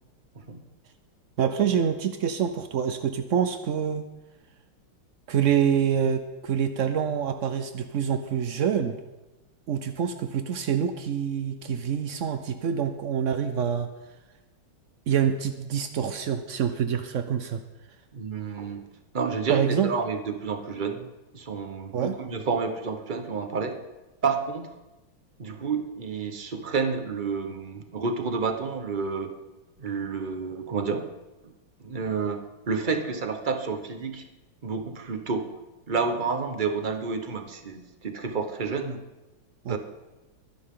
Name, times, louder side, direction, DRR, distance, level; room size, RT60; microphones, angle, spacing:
voice 1, 1.4-4.0 5.3-9.0 9.7-13.9 15.1-17.6 19.5-19.9 21.9-22.2 39.6-39.8, right 8 dB, 80° right, 8 dB, 0.6 m, -26 dB
voice 2, 18.1-18.9 19.1-21.1 21.3-23.7 24.2-24.7 25.4-29.3 29.8-31.1 31.8-34.2 34.6-35.5 35.9-39.0 39.7-39.8, right 5 dB, 30° right, 6 dB, 1.0 m, -29 dB
22.0 x 10.5 x 3.8 m, 1.1 s
omnidirectional pair, 2.2 m